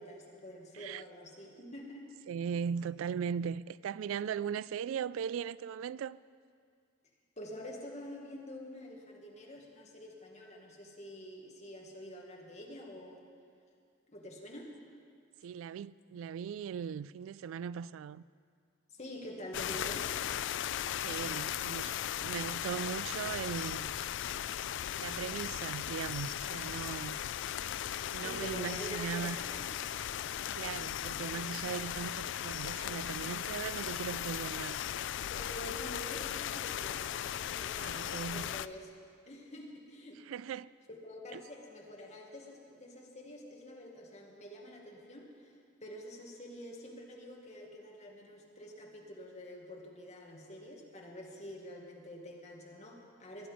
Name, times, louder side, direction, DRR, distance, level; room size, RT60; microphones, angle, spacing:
voice 1, 0.0-2.1 7.4-13.3 14.1-14.7 18.9-20.1 28.2-29.7 35.3-38.9 39.3-40.2 40.9-45.5 45.8-53.5, equal, 35° left, 2.0 m, -47 dB
voice 2, 2.3-6.2 15.4-18.2 21.0-21.9 22.2-24.0 25.0-27.3 28.1-29.4 30.5-34.8 37.8-38.5 40.3-40.7 41.3-41.4, right 7 dB, 85° right, 0.3 m, -38 dB
sound 1, 19.5-38.7, left 10 dB, 65° left, 0.3 m, -37 dB
21.0 x 10.0 x 5.1 m
head